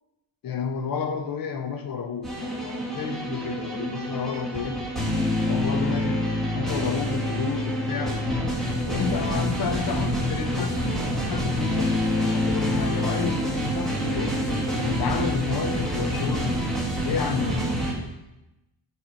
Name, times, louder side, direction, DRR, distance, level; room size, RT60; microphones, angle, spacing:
voice 1, 0.4-4.8 5.4-6.2 6.5-8.2 8.9-14.4 14.7-16.5 17.0-17.6, left 6 dB, 55° left, 7 dB, 0.8 m, -31 dB
sound 1, 2.2-17.9, left 1 dB, ahead, 1.6 m, -26 dB
8.8 x 3.4 x 5.0 m, 0.97 s
cardioid pair, 145°, 43 cm